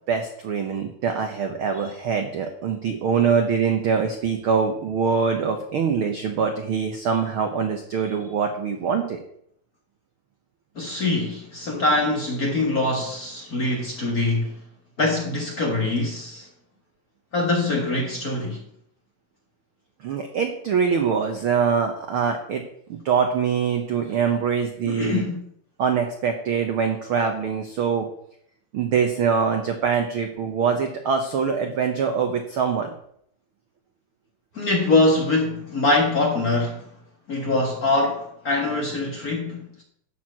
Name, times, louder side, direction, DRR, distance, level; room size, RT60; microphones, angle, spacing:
voice 1, 0.1-9.2 20.0-22.6 22.9-25.2 25.8-28.1 28.7-32.9, right 6 dB, 85° right, 1.1 m, -24 dB
voice 2, 10.7-14.5 15.0-16.5 17.3-18.6 24.8-25.4 34.5-36.8 37.3-39.8, left 2 dB, 45° left, 1.2 m, -23 dB
11.5 x 4.6 x 7.5 m
omnidirectional pair, 3.8 m